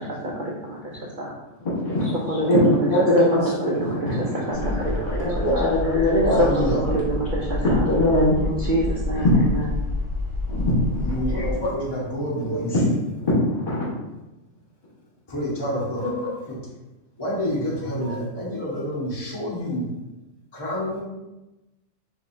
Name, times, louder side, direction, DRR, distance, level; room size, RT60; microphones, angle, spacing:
voice 1, 0.0-1.4 2.3-2.9 3.6-4.2 4.5-6.1 6.4-7.9 8.4-9.7, right 2 dB, 85° right, -3 dB, 0.4 m, -28 dB
voice 2, 1.6-2.1 2.4-6.4 7.8-8.3 9.1-9.4 10.5-11.7 12.3-12.8 13.2-13.8 16.0-16.3, left 1 dB, 40° left, -12 dB, 1.5 m, -22 dB
sound 1, 4.5-11.5, left 2 dB, 45° right, 1.1 m, -28 dB
voice 3, 6.3-6.8 11.0-12.7 15.3-16.1 16.5-16.6 17.2-19.9 20.5-21.0, equal, 20° left, -6 dB, 0.9 m, -28 dB
4.1 x 2.7 x 2.6 m, 1.0 s
omnidirectional pair, 1.4 m